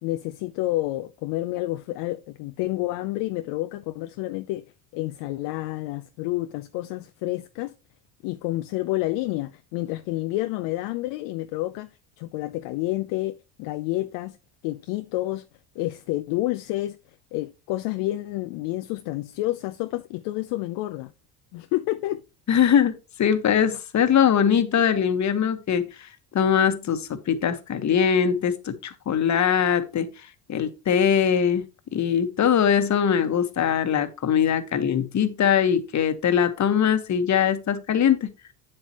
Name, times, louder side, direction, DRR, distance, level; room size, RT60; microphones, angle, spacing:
voice 1, 0.0-4.6 4.9-7.7 8.2-11.9 12.2-14.4 14.6-15.5 15.8-17.0 17.3-21.1 21.5-22.2, left 17 dB, 55° left, 0.7 m, -29 dB
voice 2, 22.5-30.1 30.5-31.6 31.9-38.3, left 8 dB, 35° left, 1.4 m, -22 dB
8.8 x 7.6 x 3.0 m
hypercardioid pair, 70°, 49 cm